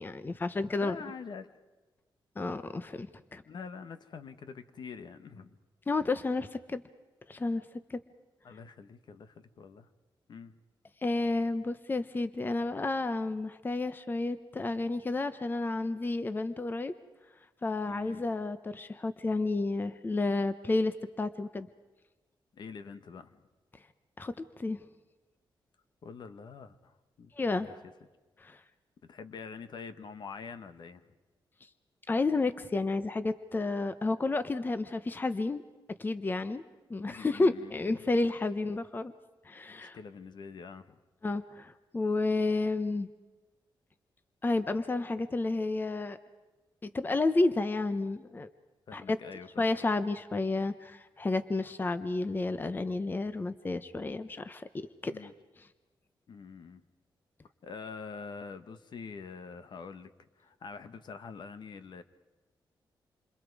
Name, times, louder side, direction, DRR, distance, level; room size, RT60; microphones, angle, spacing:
voice 1, 0.0-1.0 2.4-3.4 5.9-6.8 7.3-7.6 7.9-8.0 11.0-16.9 17.6-21.7 24.2-24.8 27.4-27.8 28.4-28.6 32.1-35.6 36.0-36.6 36.9-39.1 39.4-40.0 41.2-43.1 44.4-46.2 46.8-48.5 48.9-49.2 49.6-54.6 55.0-55.3 55.6-55.7, left 3 dB, 25° left, 12 dB, 0.9 m, -31 dB
voice 2, 0.7-1.6 3.4-5.6 8.4-9.9 10.3-10.5 17.9-18.2 22.5-23.4 26.0-26.9 27.2-27.3 27.6-27.7 29.0-31.0 37.0-37.7 38.0-38.1 38.5-38.6 39.7-41.0 48.9-49.6 55.1-55.3 56.3-56.8 57.6-60.1 60.4-62.0, left 5 dB, 60° left, 10 dB, 1.3 m, -45 dB
28.0 x 27.5 x 4.8 m, 1.2 s
wide cardioid pair, 125°, 8 cm